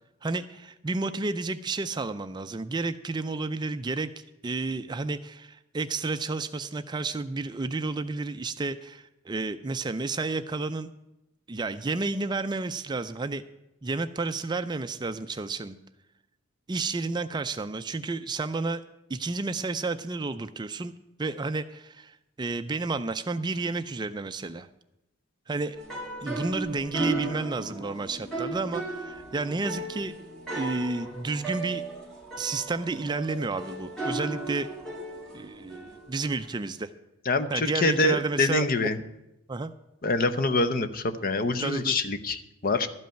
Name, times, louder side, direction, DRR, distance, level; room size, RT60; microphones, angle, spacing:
voice 1, 0.2-4.1 4.4-10.9 11.5-13.4 13.8-15.8 16.7-18.8 19.1-20.9 21.2-24.7 25.5-25.8 26.2-30.1 30.5-31.8 32.4-34.7 35.3-36.9 37.5-38.7 39.5-39.7 41.6-42.0, right 3 dB, 20° right, 10 dB, 0.3 m, -31 dB
sound 1, 25.7-36.5, right 3 dB, 5° left, 1.9 m, -35 dB
voice 2, 37.3-39.0 40.0-42.9, left 2 dB, 40° left, 11 dB, 0.7 m, -25 dB
12.5 x 5.4 x 8.9 m, 0.91 s
head